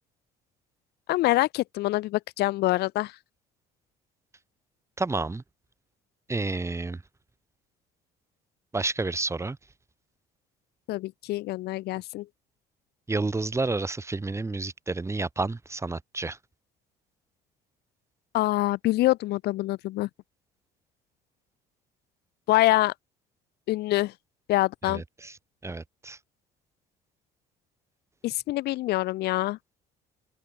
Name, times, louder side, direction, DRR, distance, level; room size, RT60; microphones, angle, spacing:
voice 1, 1.1-3.1 10.9-12.3 18.3-20.1 22.5-22.9 23.7-24.1 24.5-25.0 28.2-29.6, left 17 dB, 75° left, 0.7 m, -25 dB
voice 2, 5.0-5.4 6.3-7.0 8.7-9.6 13.1-16.4 24.8-25.4 25.6-26.2, right 3 dB, 15° right, 3.0 m, -30 dB
cardioid pair, 110°, 17 cm